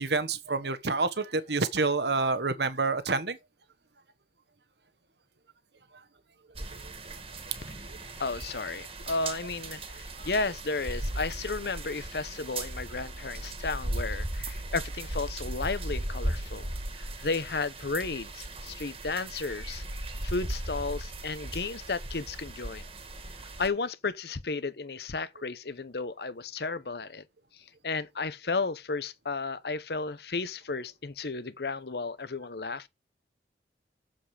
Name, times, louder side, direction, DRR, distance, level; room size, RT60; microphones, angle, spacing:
voice 1, 0.0-3.4 6.7-6.8 10.2-10.3, right 3 dB, 75° right, 1.3 m, -28 dB
sound 1, 6.5-23.7, right 1 dB, 30° right, 1.9 m, -37 dB
voice 2, 8.2-16.7 17.0-19.8 20.2-22.9 23.6-27.2 27.5-32.9, left 3 dB, 70° left, 0.8 m, -33 dB
7.6 x 7.5 x 5.0 m
head